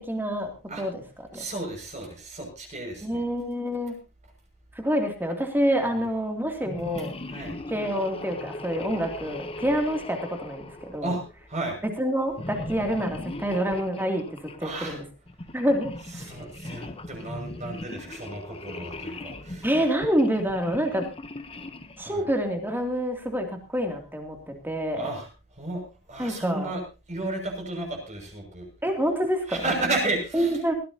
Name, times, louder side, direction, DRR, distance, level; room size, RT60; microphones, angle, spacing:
voice 1, 0.1-0.5 0.8-1.0 1.3-1.4 3.0-3.9 4.8-7.1 7.7-11.1 12.0-15.0 15.5-16.2 19.6-21.1 22.0-23.5 23.7-25.1 26.2-26.7 28.8-29.6 30.3-30.7, equal, 10° right, 3 dB, 2.7 m, -27 dB
voice 2, 1.3-3.2 5.9-6.0 7.3-7.6 11.0-11.2 11.5-11.8 14.6-15.0 16.2-19.7 22.0-22.2 24.9-25.3 25.5-25.8 26.1-26.8 27.1-28.7 29.5-30.5, right 2 dB, 35° right, 1 dB, 6.4 m, -33 dB
sound 1, 6.6-11.5 12.3-14.6 15.3-22.1, left 2 dB, 25° left, 1.0 m, -39 dB
20.5 x 15.5 x 2.9 m, 0.30 s
head